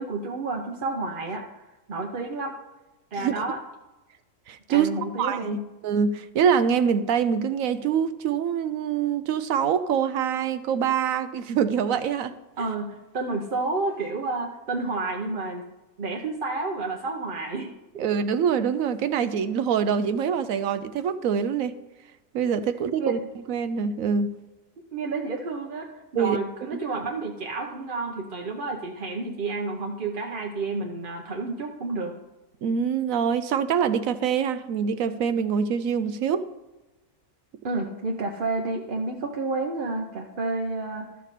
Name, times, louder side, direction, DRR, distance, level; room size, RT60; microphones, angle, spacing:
voice 1, 0.0-1.6 1.9-2.5 3.1-3.6 4.7-5.7 12.6-15.7 16.0-17.7 23.0-23.2 24.9-32.2 37.6-41.1, right 3 dB, 45° right, 0.8 m, -30 dB
voice 2, 4.5-4.9 5.2-12.3 18.0-21.8 22.3-23.2 23.5-24.4 26.2-26.7 32.6-36.5, right 7 dB, 70° right, 0.9 m, -25 dB
13.0 x 6.6 x 4.1 m
omnidirectional pair, 1.6 m